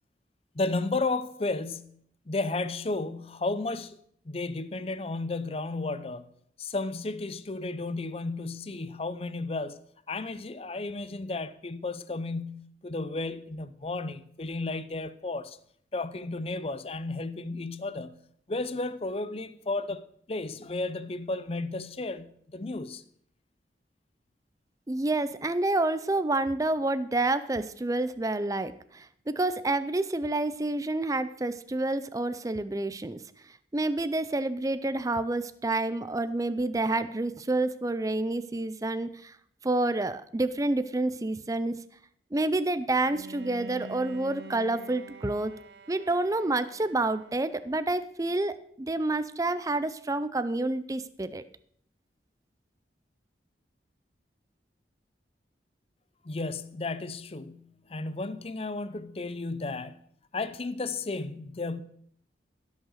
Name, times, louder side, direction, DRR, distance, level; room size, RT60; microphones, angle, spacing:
voice 1, 0.5-4.0 4.3-6.3 6.6-9.8 10.1-15.6 15.9-18.2 18.5-23.0 56.2-60.0 60.3-61.8, left 3 dB, 35° left, 0.6 m, -33 dB
voice 2, 24.9-33.2 33.7-39.3 39.6-41.8 42.3-45.5 45.9-51.4, right 2 dB, 20° right, 0.5 m, -28 dB
Bowed string instrument, 43.0-48.0, right 1 dB, 65° right, 0.8 m, -47 dB
16.0 x 6.4 x 6.5 m
head